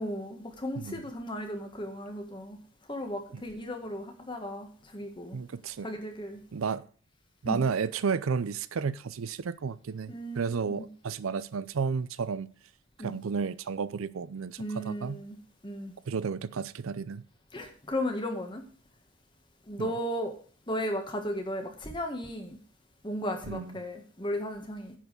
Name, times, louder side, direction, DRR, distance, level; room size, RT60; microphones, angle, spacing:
voice 1, 0.0-2.6 2.9-5.4 5.8-6.4 7.4-7.6 10.1-10.9 13.0-13.1 14.6-15.4 15.6-15.9 17.5-18.6 19.7-20.3 20.7-22.6 23.0-24.9, equal, 20° left, 1.6 m, -35 dB
voice 2, 5.3-5.9 6.5-6.9 7.4-12.5 13.0-15.2 16.1-17.2 19.8-19.9 23.4-23.8, right 5 dB, 80° right, 0.5 m, -32 dB
10.0 x 4.8 x 7.8 m
head